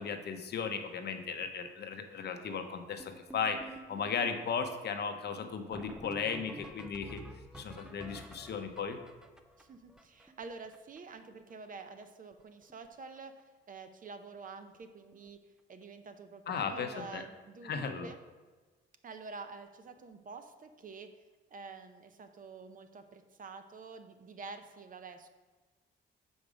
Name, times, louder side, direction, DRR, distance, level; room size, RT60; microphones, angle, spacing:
voice 1, 0.0-7.2 7.5-9.0 16.5-17.2 17.6-18.1, left 6 dB, 55° left, 6 dB, 0.8 m, -36 dB
sound 1, 3.0-11.2 11.5-11.6 11.8-12.0 12.3-12.9 13.2-13.4 14.2-14.3 14.7-14.8 15.1-15.3 17.5-17.6 20.0-20.1, right 1 dB, 5° right, 0.5 m, -51 dB
voice 2, 9.6-15.4 15.7-18.2 19.0-21.1 21.5-25.3, right 4 dB, 45° right, 8 dB, 0.7 m, -48 dB
6.2 x 5.1 x 5.0 m, 1.3 s
cardioid pair, 90°, 20 cm